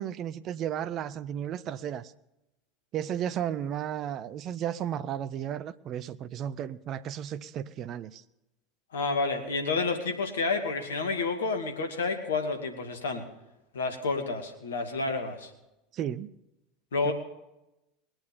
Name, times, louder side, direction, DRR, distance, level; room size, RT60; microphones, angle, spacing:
voice 1, 0.0-2.1 2.9-8.2 15.9-16.3 17.0-17.1, right 10 dB, 40° right, 0.6 m, -34 dB
voice 2, 8.9-13.2 13.7-15.5 16.9-17.1, left 3 dB, 75° left, 2.4 m, -30 dB
21.0 x 9.0 x 5.3 m
figure-of-eight pair, 75°, 0 cm